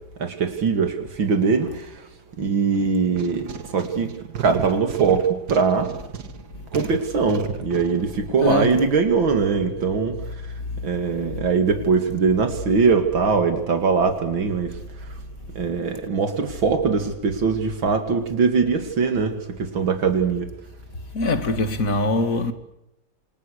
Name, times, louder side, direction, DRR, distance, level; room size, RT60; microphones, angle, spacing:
voice 1, 0.2-1.8 2.4-4.1 4.4-5.9 6.7-10.2 10.8-14.7 15.6-20.5, right 5 dB, 80° right, 3.2 m, -21 dB
sound 1, 2.7-9.2, right 7 dB, 55° right, 2.0 m, -34 dB
voice 2, 8.4-8.9 10.7-10.9 11.3-11.4 21.1-22.5, left 2 dB, 45° left, 2.5 m, -23 dB
28.0 x 28.0 x 6.6 m
omnidirectional pair, 2.1 m